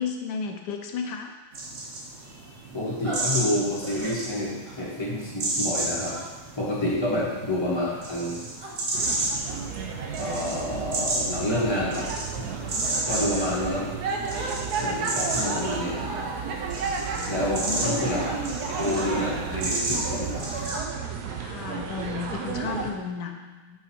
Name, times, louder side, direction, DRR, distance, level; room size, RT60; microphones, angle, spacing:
voice 1, 0.0-1.3 13.0-13.2 17.1-17.9 21.4-23.8, left 5 dB, 85° left, 4 dB, 1.2 m, -34 dB
sound 1, 1.5-20.8, right 2 dB, 55° right, 1.4 m, -33 dB
voice 2, 2.7-6.2 6.6-8.4 10.2-12.1 12.3-12.5 13.0-13.9 14.8-16.0 17.3-18.2 18.5-20.5, left 1 dB, 15° left, -6 dB, 1.5 m, -28 dB
sound 2, 3.0-3.2 3.8-4.1 4.7-5.0 6.1-6.5 7.1-7.4 8.1-8.7 9.5-9.8 10.3-10.6 11.1-11.4 11.9-12.2 12.7-13.0 14.3-14.9 15.3-16.3 16.9-17.7 18.0-18.4 18.9-19.3 20.3-20.8 21.3-21.5 21.9-22.6, right 1 dB, 30° right, 0.6 m, -40 dB
sound 3, 8.9-22.9, right 5 dB, 75° right, 1.2 m, -32 dB
5.6 x 5.1 x 4.4 m, 1.2 s
omnidirectional pair, 1.8 m